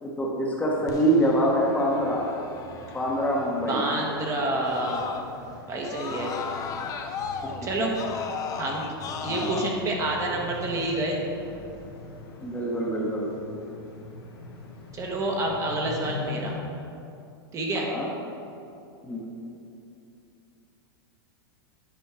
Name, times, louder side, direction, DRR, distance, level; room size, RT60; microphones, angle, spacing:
voice 1, 0.0-2.3 2.9-3.9 7.4-7.5 9.3-9.6 12.4-13.3 17.8-18.1 19.0-19.2, right 1 dB, 10° left, -3 dB, 1.1 m, -25 dB
sound 1, 0.7-16.6, left 3 dB, 80° left, 1.4 m, -43 dB
Screaming, 0.9-5.5 5.8-9.7, left 6 dB, 30° left, 0.5 m, -36 dB
voice 2, 3.7-5.1 5.7-6.3 7.6-7.9 8.6-8.9 9.2-11.2 14.9-16.6 17.5-17.9, right 2 dB, 25° right, -1 dB, 1.1 m, -28 dB
9.5 x 4.4 x 4.7 m, 2.7 s
hypercardioid pair, 130°, 12 cm